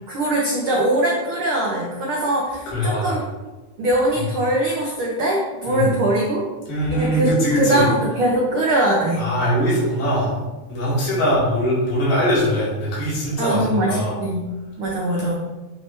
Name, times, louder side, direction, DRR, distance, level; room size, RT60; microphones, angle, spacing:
voice 1, 0.1-3.2 3.8-6.4 6.9-9.2 13.4-14.5 14.8-15.3, right 1 dB, 85° right, -3 dB, 1.1 m, -21 dB
voice 2, 2.7-3.2 4.1-4.2 5.6-5.9 6.7-7.9 9.2-10.4 10.7-14.2 15.1-15.4, equal, 80° left, -7 dB, 4.0 m, -22 dB
8.7 x 3.4 x 4.4 m, 1.2 s
omnidirectional pair, 3.8 m